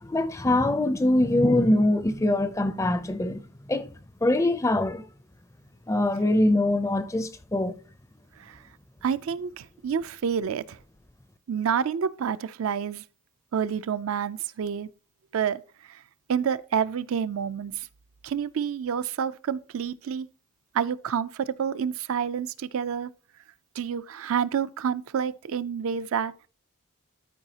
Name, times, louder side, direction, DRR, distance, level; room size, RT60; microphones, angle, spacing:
voice 1, 0.0-3.4 3.7-3.9 4.2-5.0 5.9-7.8, left 1 dB, 15° left, 0.4 m, -23 dB
voice 2, 9.0-10.8 11.5-13.0 13.5-14.9 15.3-15.6 15.9-16.0 16.3-17.9 18.2-20.3 20.7-23.1 23.8-26.3, right 7 dB, 65° right, 0.4 m, -28 dB
12.5 x 4.7 x 2.8 m
head